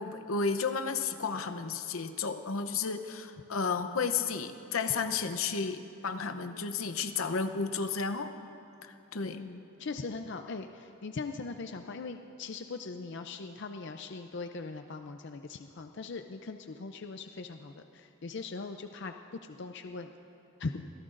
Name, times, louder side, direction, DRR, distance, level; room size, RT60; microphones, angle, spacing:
voice 1, 0.0-8.3 8.8-9.4, left 5 dB, 85° left, 9 dB, 0.8 m, -32 dB
voice 2, 9.3-10.7 11.0-17.8 18.2-19.1 19.6-20.1 20.6-20.8, left 4 dB, 55° left, 6 dB, 0.5 m, -40 dB
26.0 x 17.0 x 2.6 m, 2.9 s
head